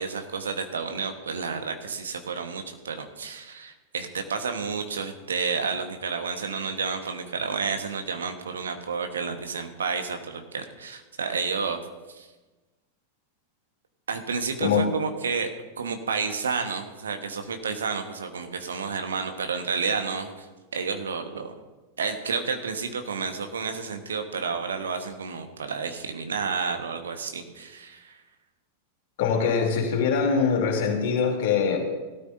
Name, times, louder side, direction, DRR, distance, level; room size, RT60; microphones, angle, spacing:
voice 1, 0.0-11.8 12.1-12.3 14.1-15.5 15.8-20.5 20.7-21.5 22.0-28.1, right 5 dB, 70° right, 6 dB, 1.4 m, -30 dB
voice 2, 29.2-31.8, left 6 dB, 55° left, 1 dB, 3.2 m, -23 dB
18.0 x 13.0 x 2.7 m, 1.2 s
figure-of-eight pair, 90°, 0 cm